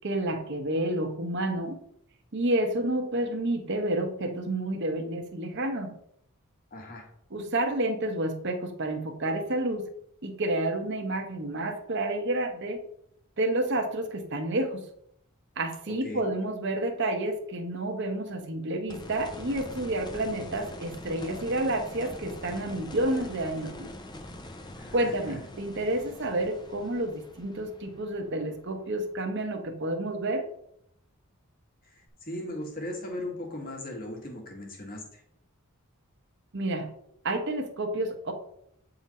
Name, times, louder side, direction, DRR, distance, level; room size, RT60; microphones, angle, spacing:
voice 1, 0.0-1.8 2.3-5.9 7.3-9.8 10.2-12.8 13.4-14.8 15.6-23.9 24.9-30.4 36.5-36.9 37.2-38.3, right 1 dB, 55° right, 4 dB, 1.0 m, -30 dB
voice 2, 6.7-7.1 15.9-16.4 24.8-25.4 31.8-35.2, left 1 dB, 40° left, 0 dB, 1.8 m, -38 dB
sound 1, 18.9-29.8 32.1-32.2, left 1 dB, 20° left, 0.7 m, -44 dB
8.8 x 3.9 x 4.2 m, 0.71 s
head